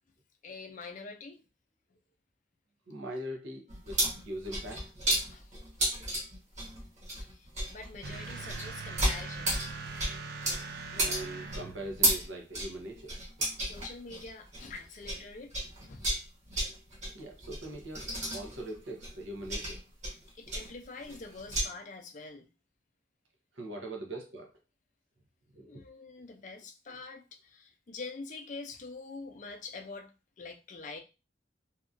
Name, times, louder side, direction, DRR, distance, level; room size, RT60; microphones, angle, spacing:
voice 1, 0.4-1.4 5.2-5.6 7.2-9.6 13.6-15.5 15.8-16.1 20.3-22.5 25.7-31.0, left 3 dB, 40° left, 0.4 m, -45 dB
voice 2, 2.9-4.9 10.9-13.2 17.1-19.8 23.5-24.5 25.5-25.8, right 1 dB, 80° right, 0.8 m, -41 dB
sound 1, 3.7-15.2 15.5-21.7, right 1 dB, 40° right, 1.0 m, -33 dB
sound 2, 8.0-12.0, right 4 dB, 55° right, 0.4 m, -41 dB
2.8 x 2.4 x 2.5 m
head